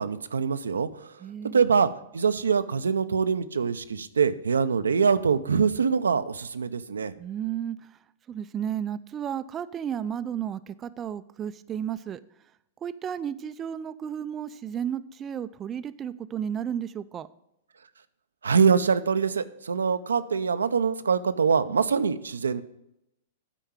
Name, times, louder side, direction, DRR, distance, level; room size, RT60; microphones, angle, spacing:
voice 1, 0.0-1.1 1.5-1.9 2.1-7.1 18.4-22.6, right 6 dB, 85° right, 11 dB, 0.5 m, -24 dB
voice 2, 1.2-1.6 7.2-7.9 8.3-12.2 12.8-17.3, right 9 dB, 25° right, 13 dB, 0.4 m, -33 dB
8.9 x 4.6 x 7.2 m, 0.80 s
hypercardioid pair, 110°, 0 cm